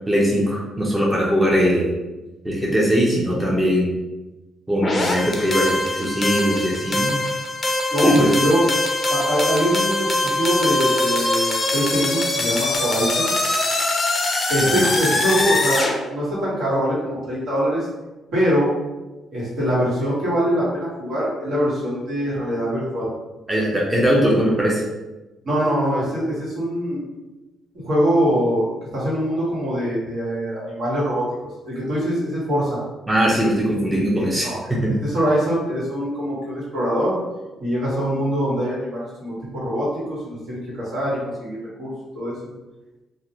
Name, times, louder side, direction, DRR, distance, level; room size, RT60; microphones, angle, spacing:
voice 1, 0.1-1.9 2.4-3.9 4.7-7.1 8.0-8.3 14.7-14.8 23.5-24.8 33.1-35.0, equal, 10° right, -4 dB, 0.6 m, -20 dB
sound 1, 4.8-15.9, left 2 dB, 35° left, 0.5 m, -22 dB
voice 2, 7.9-8.7 9.1-13.3 14.5-17.9 18.3-18.7 19.3-23.1 25.4-27.0 27.7-31.2 31.6-32.8 34.2-34.7 35.0-37.2 37.6-42.3, equal, 70° right, -8 dB, 1.4 m, -23 dB
2.5 x 2.1 x 2.9 m, 1.1 s
cardioid pair, 90°, 0 cm